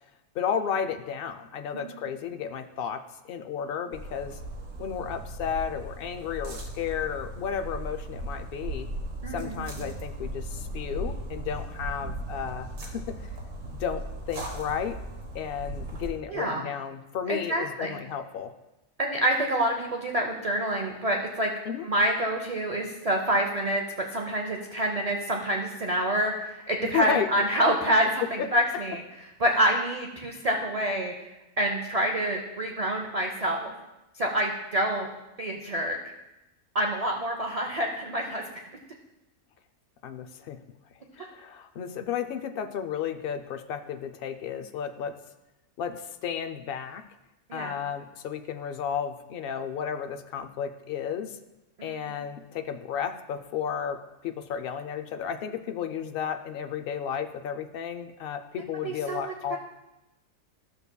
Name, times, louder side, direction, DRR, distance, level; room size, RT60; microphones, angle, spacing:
voice 1, 0.3-3.0 3.3-4.4 4.8-8.9 9.3-13.3 13.8-15.0 15.3-18.5 21.7-21.9 26.8-27.3 40.0-40.6 41.2-45.2 45.8-47.0 47.5-51.4 51.8-59.6, left 8 dB, 75° left, 8 dB, 0.5 m, -33 dB
sound 1, 3.9-16.1, right 1 dB, 70° right, 1.7 m, -37 dB
voice 2, 9.2-9.7 16.3-16.7 17.3-17.9 19.0-21.5 21.8-23.8 24.1-29.0 29.4-31.1 31.6-33.7 34.2-35.1 35.4-36.0 36.7-38.6 47.5-47.8 51.8-52.2 58.8-59.6, right 1 dB, 50° right, 2 dB, 0.4 m, -27 dB
12.5 x 6.8 x 2.2 m, 0.96 s
omnidirectional pair, 1.5 m